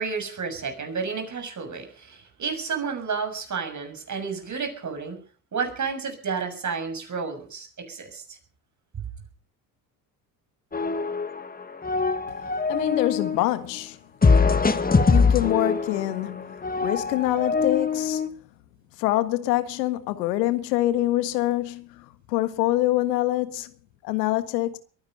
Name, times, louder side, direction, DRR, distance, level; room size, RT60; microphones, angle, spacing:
voice 1, 0.0-5.2 5.5-8.4 8.9-9.1, right 5 dB, 35° right, 6.8 m, -31 dB
sound 1, 10.7-11.5 11.7-13.4 14.2-18.3, left 4 dB, 20° left, 1.7 m, -23 dB
voice 2, 12.7-14.0 15.1-16.6 16.8-18.2 19.0-23.7 24.0-24.8, left 16 dB, 90° left, 1.7 m, -25 dB
22.5 x 10.5 x 5.5 m
supercardioid pair, 75°, 47 cm